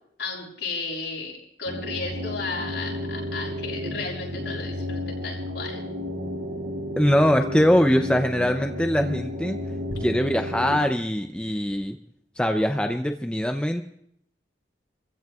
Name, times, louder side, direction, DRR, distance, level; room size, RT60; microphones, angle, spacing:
voice 1, 0.2-5.8, left 3 dB, 75° left, -4 dB, 6.7 m, -34 dB
sound 1, 1.7-10.8, left 1 dB, 85° right, 2.7 m, -32 dB
voice 2, 7.0-9.6 10.0-12.0 12.4-13.8, equal, 5° left, 5 dB, 0.5 m, -22 dB
29.0 x 15.0 x 2.4 m, 0.71 s
head